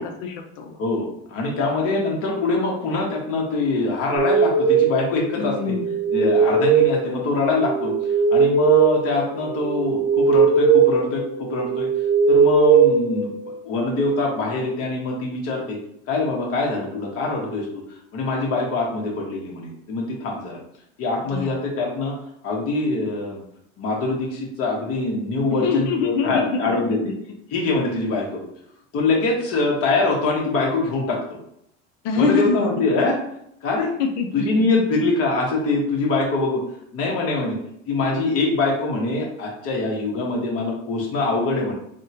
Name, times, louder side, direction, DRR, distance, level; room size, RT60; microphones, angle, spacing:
voice 1, 0.0-0.7 5.4-5.9 21.3-21.5 25.5-27.2 32.0-32.7 34.0-34.8, left 4 dB, 60° left, 4 dB, 0.7 m, -25 dB
voice 2, 0.8-5.8 6.1-7.9 8.3-11.9 12.3-13.3 13.6-15.8 16.1-17.8 18.1-20.6 21.0-22.2 22.4-23.4 23.8-27.0 27.5-28.4 28.9-31.2 32.1-33.2 33.6-33.9 34.3-36.6 36.9-37.6 37.9-41.7, left 3 dB, 40° left, -2 dB, 1.1 m, -24 dB
sound 1, 4.2-13.9, right 5 dB, 25° right, 0.8 m, -19 dB
3.5 x 2.2 x 2.8 m, 0.74 s
supercardioid pair, 120°, 34 cm